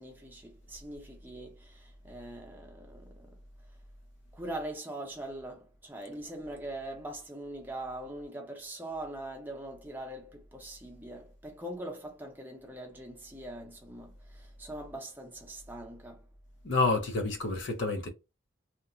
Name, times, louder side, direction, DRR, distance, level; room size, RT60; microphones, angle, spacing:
voice 1, 0.0-3.4 4.3-16.2, right 1 dB, 10° right, 0.6 m, -42 dB
voice 2, 16.6-18.1, left 3 dB, 65° left, 0.6 m, -28 dB
2.8 x 2.1 x 2.4 m
head